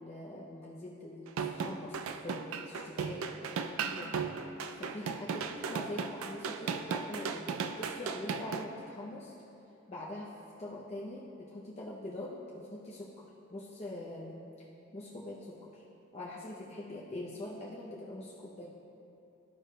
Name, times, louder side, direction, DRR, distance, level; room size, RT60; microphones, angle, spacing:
voice 1, 0.0-4.1 4.8-7.4 7.8-9.3 9.9-10.3 10.6-14.7 14.9-15.8 16.1-18.7, left 1 dB, 30° left, -5 dB, 0.5 m, -44 dB
sound 1, 1.3-8.6, right 5 dB, 80° right, 0.4 m, -36 dB
13.0 x 4.8 x 2.2 m, 2.8 s
head